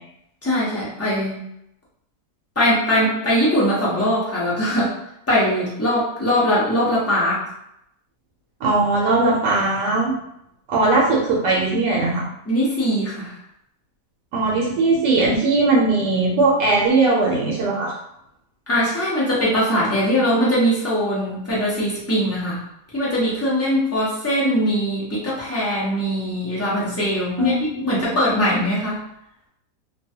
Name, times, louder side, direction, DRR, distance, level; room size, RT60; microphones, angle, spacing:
voice 1, 0.4-1.4 2.6-4.9 5.3-7.4 12.5-13.3 18.7-22.6 22.9-29.0, equal, 15° left, -8 dB, 0.4 m, -21 dB
voice 2, 8.6-10.1 10.7-12.2 14.3-17.9 27.4-28.2, right 3 dB, 75° right, -3 dB, 1.2 m, -19 dB
3.0 x 2.3 x 2.7 m, 0.79 s
omnidirectional pair, 1.8 m